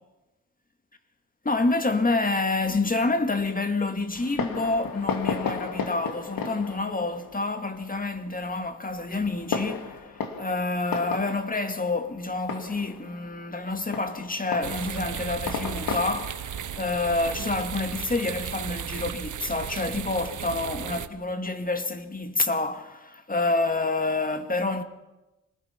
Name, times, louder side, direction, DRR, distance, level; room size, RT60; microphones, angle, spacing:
voice 1, 1.4-24.8, left 3 dB, 25° left, 2.1 m, -28 dB
Fireworks, 4.1-18.3, left 5 dB, 80° left, 2.5 m, -35 dB
sound 1, 14.6-21.1, right 9 dB, 60° right, 1.0 m, -35 dB
26.5 x 19.5 x 5.9 m
cardioid pair, 85°, 34 cm